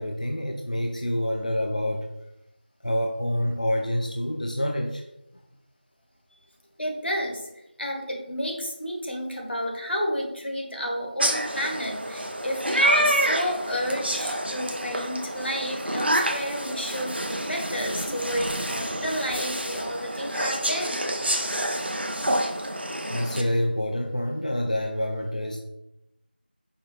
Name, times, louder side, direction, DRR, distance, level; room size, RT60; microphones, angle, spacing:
voice 1, 0.0-2.1 2.8-5.0 22.2-22.3 23.1-25.6, equal, 45° left, 1 dB, 0.3 m, -27 dB
voice 2, 6.8-7.5 7.8-21.0, equal, 85° left, 0 dB, 1.2 m, -31 dB
sound 1, 11.2-23.4, right 1 dB, 75° right, 0.6 m, -28 dB
4.8 x 2.7 x 3.1 m, 0.88 s
figure-of-eight pair, 180°, 6 cm